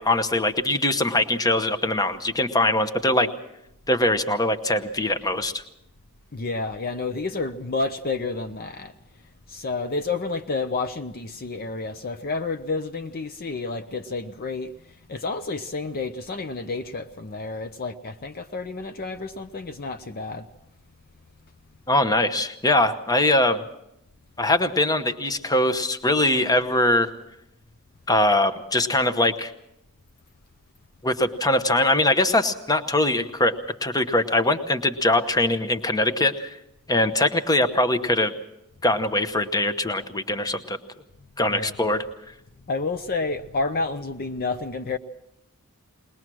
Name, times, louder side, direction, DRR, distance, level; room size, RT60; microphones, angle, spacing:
voice 1, 0.0-3.3 3.9-5.6 21.9-23.6 24.4-27.1 28.1-29.5 31.0-36.6 36.9-38.3 38.8-40.8 41.4-42.1, left 1 dB, 15° left, 0.9 m, -22 dB
voice 2, 6.3-8.9 9.5-14.7 15.1-20.4 41.5-41.7 42.7-45.0, left 3 dB, 45° left, 0.7 m, -30 dB
21.5 x 20.0 x 6.2 m
head